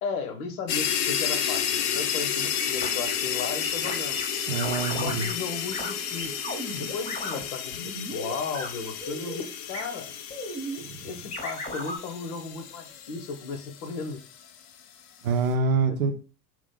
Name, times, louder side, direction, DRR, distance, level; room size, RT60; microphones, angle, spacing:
voice 1, 0.0-4.2 4.9-6.4 6.7-10.1 11.0-14.2 15.9-16.1, left 5 dB, 65° left, 7 dB, 0.8 m, -35 dB
sound 1, 0.7-14.3, left 8 dB, 40° left, 0.4 m, -31 dB
sound 2, 0.9-6.9, right 3 dB, 15° right, 0.5 m, -46 dB
sound 3, 2.6-3.1 3.6-4.2 4.5-5.3 5.7-5.9 6.2-7.4 7.7-8.7 9.0-9.5 9.7-9.8 10.3-10.8 11.3-12.0, left 1 dB, 15° left, 0.8 m, -35 dB
voice 2, 4.5-5.3 10.9-11.0 15.2-16.1, right 4 dB, 60° right, 7 dB, 0.6 m, -25 dB
2.8 x 2.4 x 3.6 m, 0.38 s
hypercardioid pair, 85°, 47 cm